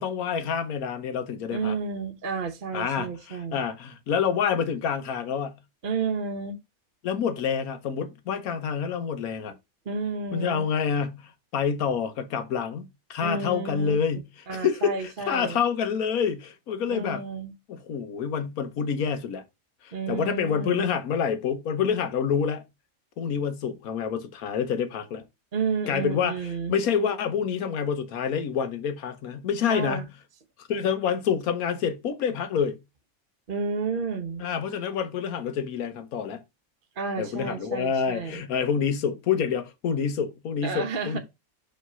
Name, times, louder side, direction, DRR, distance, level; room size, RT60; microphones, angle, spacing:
voice 1, 0.0-1.8 2.7-5.6 7.0-9.5 10.3-17.3 17.7-19.4 19.8-22.6 23.2-25.2 25.9-26.4 26.7-30.1 30.6-32.8 34.4-36.4 37.2-41.2, left 7 dB, 75° left, 1.3 m, -27 dB
voice 2, 1.5-3.6 5.8-6.6 9.9-10.7 13.2-14.0 14.5-15.6 16.9-17.5 19.9-20.9 25.5-26.8 29.7-30.1 33.5-34.4 37.0-38.4 40.6-41.2, right 4 dB, 45° right, 0.9 m, -31 dB
5.3 x 3.3 x 5.5 m
omnidirectional pair, 1.5 m